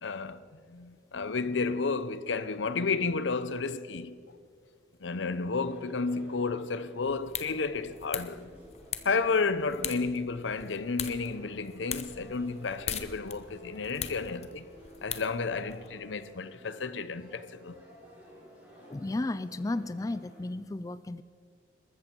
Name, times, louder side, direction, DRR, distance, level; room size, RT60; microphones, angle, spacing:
voice 1, 0.0-4.2 5.0-8.5 9.0-14.7 15.0-17.8, left 4 dB, 85° left, 0.7 m, -32 dB
sound 1, 5.5-20.5, equal, 10° right, 4.9 m, -54 dB
sound 2, 7.0-15.9, left 9 dB, 35° left, 0.9 m, -41 dB
voice 2, 18.9-21.2, left 2 dB, 20° left, 0.3 m, -33 dB
21.5 x 14.0 x 4.5 m
head